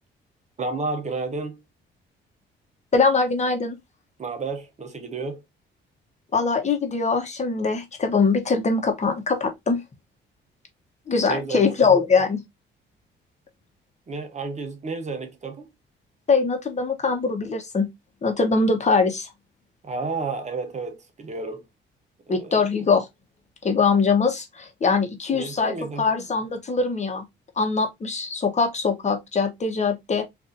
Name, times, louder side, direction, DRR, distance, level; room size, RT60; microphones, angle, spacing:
voice 1, 0.6-1.6 4.2-5.4 11.3-11.8 14.1-15.7 19.8-21.7 22.3-22.6 25.3-26.1, right 3 dB, 35° right, 0.9 m, -31 dB
voice 2, 2.9-3.8 6.3-9.8 11.1-12.4 16.3-17.9 18.2-19.3 22.3-23.1 23.6-25.7 26.0-27.2 27.6-30.2, left 4 dB, 35° left, 1.0 m, -22 dB
4.0 x 2.6 x 2.6 m
cardioid pair, 90°, 20 cm